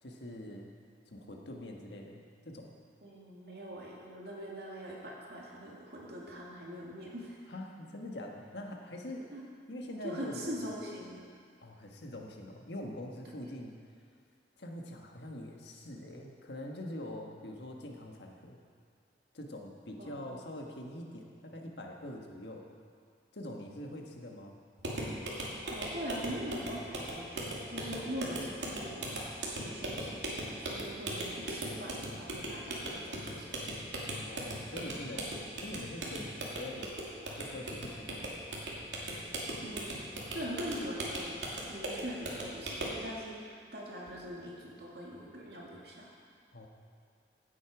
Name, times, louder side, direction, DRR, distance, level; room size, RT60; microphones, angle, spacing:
voice 1, 0.0-0.7 1.1-2.7 7.5-9.3 9.7-10.6 11.6-13.7 14.6-18.6 19.3-22.7 23.3-24.6 34.2-36.9 37.3-38.4 46.5-46.7, left 1 dB, 75° left, 1 dB, 1.5 m, -44 dB
voice 2, 3.0-7.4 9.3-9.5 10.0-11.2 20.0-20.4 25.7-29.2 29.6-33.9 39.6-40.0 40.3-41.4 41.7-46.1, equal, 65° right, -4 dB, 2.3 m, -42 dB
sound 1, 24.8-43.0, right 1 dB, 80° right, 2.4 m, -39 dB
16.0 x 8.3 x 4.8 m, 2.2 s
head